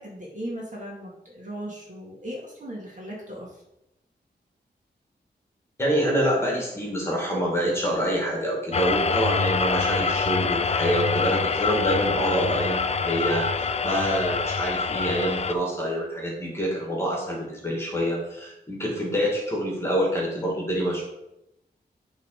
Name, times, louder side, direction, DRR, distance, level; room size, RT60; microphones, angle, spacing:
voice 1, 0.0-3.5, equal, 45° right, -3 dB, 2.1 m, -37 dB
voice 2, 5.8-21.1, equal, 15° left, -2 dB, 2.2 m, -26 dB
sound 1, 8.7-15.5, left 5 dB, 40° left, 0.4 m, -25 dB
8.0 x 3.9 x 4.9 m, 0.87 s
wide cardioid pair, 105°, 17 cm